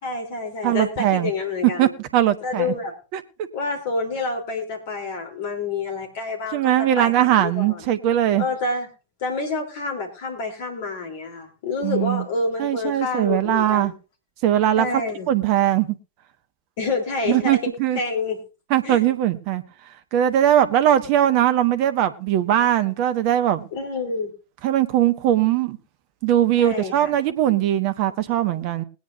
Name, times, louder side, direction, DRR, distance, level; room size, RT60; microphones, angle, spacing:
voice 1, 0.0-1.9 2.4-2.9 3.5-7.8 8.4-8.9 9.2-13.9 14.8-15.3 16.8-17.6 18.0-18.4 18.8-19.0 23.7-24.3 26.6-27.1, left 3 dB, 50° left, 3.5 m, -28 dB
voice 2, 0.6-1.3 1.8-2.7 3.1-3.5 6.5-8.5 11.8-12.2 12.6-13.9 14.4-14.9 15.3-15.9 17.3-18.0 18.7-19.6 20.1-23.6 24.6-25.8 26.2-28.8, right 11 dB, 45° right, 1.1 m, -20 dB
21.0 x 9.5 x 2.7 m
figure-of-eight pair, 90°, 0 cm